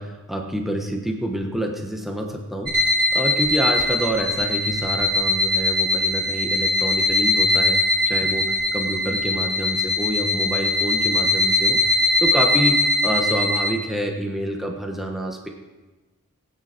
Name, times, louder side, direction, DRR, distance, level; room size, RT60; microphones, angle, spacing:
voice 1, 0.0-2.8 3.1-7.8 8.1-15.5, right 1 dB, ahead, 1 dB, 1.2 m, -27 dB
sound 1, 2.7-13.7, left 2 dB, 45° right, 3.6 m, -21 dB
19.0 x 9.4 x 4.5 m, 1.2 s
head